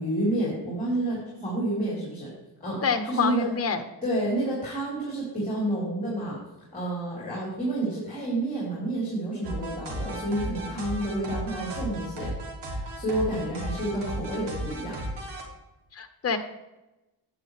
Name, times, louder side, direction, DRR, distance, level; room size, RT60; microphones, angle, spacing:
voice 1, 0.0-2.3 2.6-3.5 4.0-6.4 6.7-12.3 12.7-15.0, right 1 dB, 20° left, -5 dB, 4.2 m, -29 dB
voice 2, 2.8-3.8 15.9-16.4, left 5 dB, 35° left, 7 dB, 1.1 m, -26 dB
Tinted Fade, 9.4-15.4, right 1 dB, 80° right, 2.9 m, -34 dB
11.0 x 9.4 x 3.4 m, 0.99 s
wide cardioid pair, 115°, 41 cm